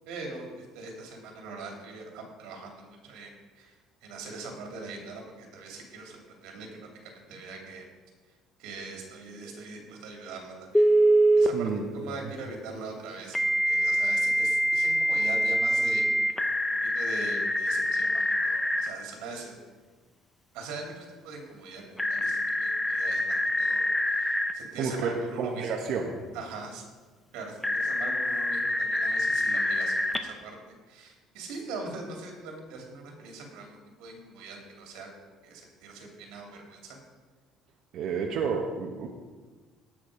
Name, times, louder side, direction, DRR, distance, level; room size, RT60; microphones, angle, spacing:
voice 1, 0.0-3.7 4.0-7.8 8.6-10.8 11.4-13.4 13.6-16.0 16.8-19.5 20.5-25.7 26.3-26.8 27.3-30.6 30.9-37.0, right 3 dB, 85° right, 2 dB, 2.8 m, -42 dB
Telephone, 10.7-11.5 13.3-18.9 22.0-24.5 27.6-30.2, equal, 5° left, 0.6 m, -25 dB
voice 2, 11.5-12.2 24.8-26.2 37.9-39.1, right 5 dB, 50° right, 1 dB, 1.0 m, -31 dB
18.0 x 6.2 x 5.0 m, 1.4 s
cardioid pair, 175°, 0 cm